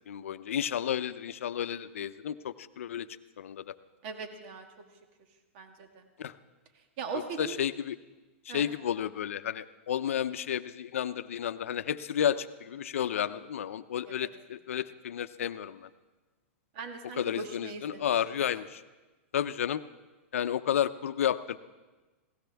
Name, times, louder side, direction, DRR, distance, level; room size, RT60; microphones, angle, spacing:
voice 1, 0.1-3.1 3.4-3.7 6.2-6.3 7.1-8.0 8.5-15.9 17.2-18.8 19.3-19.8 20.3-21.6, left 9 dB, 85° left, 13 dB, 0.6 m, -32 dB
voice 2, 4.0-4.7 5.5-6.0 7.0-7.6 8.5-8.6 16.7-18.1, right 5 dB, 45° right, 5 dB, 1.6 m, -39 dB
19.5 x 17.0 x 3.5 m, 1.2 s
hypercardioid pair, 150°, 7 cm